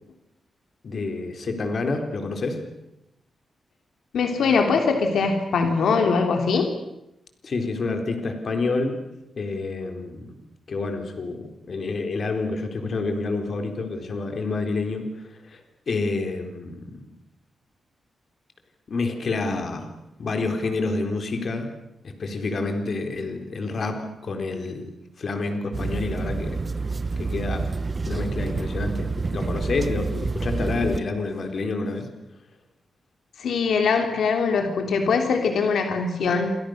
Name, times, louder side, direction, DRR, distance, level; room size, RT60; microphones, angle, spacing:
voice 1, 0.8-2.6 7.4-9.0 9.4-10.4 10.7-15.6 15.9-17.0 18.9-19.9 20.2-21.7 22.0-24.8 25.2-26.6 27.2-27.7 28.1-32.1, left 3 dB, 45° left, 5 dB, 4.1 m, -28 dB
voice 2, 4.1-6.7 33.4-36.6, left 5 dB, 75° left, 4 dB, 3.1 m, -22 dB
sound 1, 25.7-31.0, right 4 dB, 25° right, 1.0 m, -28 dB
29.0 x 26.0 x 6.6 m, 0.87 s
wide cardioid pair, 160°, 0 cm